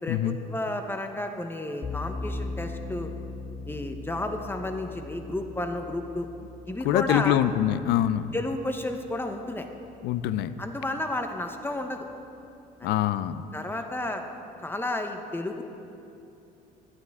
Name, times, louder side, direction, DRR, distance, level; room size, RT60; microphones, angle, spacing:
voice 1, 0.0-3.1 3.7-6.3 6.7-7.4 8.3-9.7 10.6-12.1 12.8-12.9 13.5-14.2 14.6-15.6, left 1 dB, 15° left, 5 dB, 0.9 m, -32 dB
sound 1, 1.8-10.7, left 3 dB, 30° left, 1.5 m, -40 dB
voice 2, 6.8-8.3 10.0-10.5 12.8-13.4, left 12 dB, 80° left, 14 dB, 0.5 m, -24 dB
24.0 x 9.0 x 3.6 m, 2.7 s
cardioid pair, 110°, 17 cm